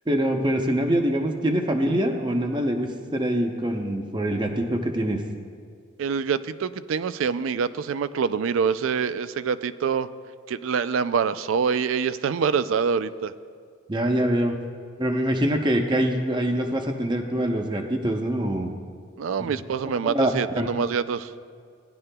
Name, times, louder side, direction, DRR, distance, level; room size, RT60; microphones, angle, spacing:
voice 1, 0.1-5.2 13.9-14.6 15.0-18.7 20.0-20.7, right 1 dB, 20° right, 3 dB, 0.6 m, -24 dB
voice 2, 6.0-10.1 10.5-13.3 19.2-21.3, right 6 dB, 70° right, 13 dB, 0.3 m, -25 dB
17.5 x 10.5 x 2.2 m, 2.1 s
head